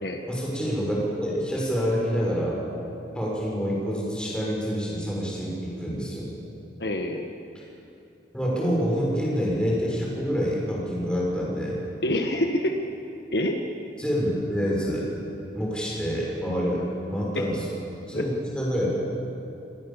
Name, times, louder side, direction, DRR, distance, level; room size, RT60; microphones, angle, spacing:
voice 1, 0.2-2.6 3.1-6.3 8.3-11.8 14.0-15.1 15.5-17.6 18.1-18.9, equal, 5° left, -4 dB, 6.7 m, -27 dB
voice 2, 6.8-7.3 12.0-12.8 13.3-13.6 17.3-17.5 18.1-18.2, left 1 dB, 60° left, 3 dB, 1.5 m, -26 dB
28.0 x 20.0 x 7.3 m, 2.8 s
head